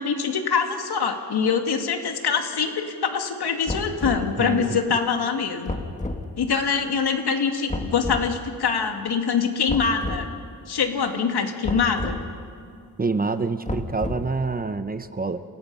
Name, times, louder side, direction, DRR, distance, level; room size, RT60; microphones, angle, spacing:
voice 1, 0.0-5.8 6.4-10.3 10.7-12.2, left 6 dB, 80° left, 4 dB, 2.5 m, -24 dB
sound 1, 3.7-4.3 5.7-6.2 7.7-8.3 9.7-10.3 11.6-12.2 13.7-14.4, left 2 dB, 20° left, 1.9 m, -30 dB
voice 2, 4.4-4.8 13.0-15.4, right 4 dB, 25° right, 10 dB, 0.9 m, -27 dB
29.0 x 28.0 x 5.6 m, 2.3 s
wide cardioid pair, 130°, 38 cm